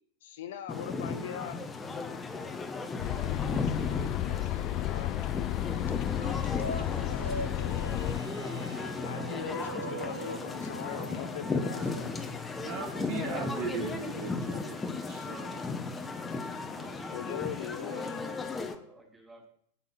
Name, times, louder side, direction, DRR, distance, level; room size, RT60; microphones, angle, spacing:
voice 1, 0.2-1.6 4.2-5.2 9.0-12.1 17.1-18.2, left 10 dB, 55° left, 9 dB, 1.0 m, -40 dB
sound 1, 0.7-18.8, left 3 dB, 15° left, 1.3 m, -35 dB
sound 2, 3.0-8.2, left 19 dB, 40° left, 0.5 m, -33 dB
voice 2, 3.0-4.8 16.6-19.5, right 3 dB, 10° right, -1 dB, 4.5 m, -51 dB
sound 3, 6.1-14.6, right 2 dB, 80° right, 1.0 m, -43 dB
voice 3, 12.6-15.9, right 6 dB, 45° right, 4 dB, 1.7 m, -39 dB
9.1 x 8.8 x 5.9 m, 0.65 s
figure-of-eight pair, 90°, 0 cm